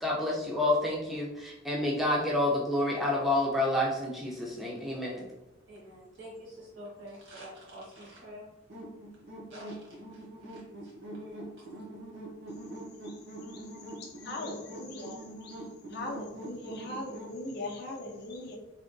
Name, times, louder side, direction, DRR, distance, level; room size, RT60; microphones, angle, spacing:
voice 1, 0.0-5.2, left 1 dB, ahead, -5 dB, 0.4 m, -29 dB
voice 2, 5.7-8.5 9.5-11.6, equal, 75° right, -5 dB, 1.3 m, -48 dB
sound 1, 8.7-17.4, right 1 dB, 60° right, 0.7 m, -44 dB
voice 3, 14.0-15.1 15.4-15.6 15.9-18.6, left 2 dB, 55° left, 1 dB, 0.5 m, -39 dB
3.4 x 2.2 x 2.5 m, 0.94 s
head